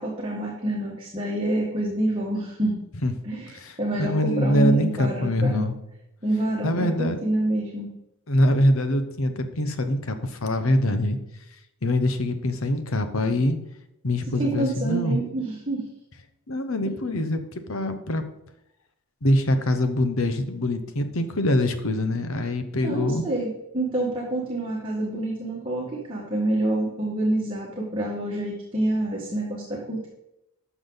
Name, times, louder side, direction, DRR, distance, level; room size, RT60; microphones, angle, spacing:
voice 1, 0.0-2.8 3.2-5.7 6.2-7.9 14.4-15.9 22.8-23.5 23.7-30.1, right 1 dB, 25° right, -4 dB, 1.8 m, -27 dB
voice 2, 3.5-5.7 6.6-7.2 8.3-11.2 11.8-13.6 14.0-15.2 16.5-18.2 19.2-23.2, left 1 dB, 70° left, 8 dB, 1.0 m, -24 dB
12.0 x 6.1 x 4.0 m, 0.86 s
head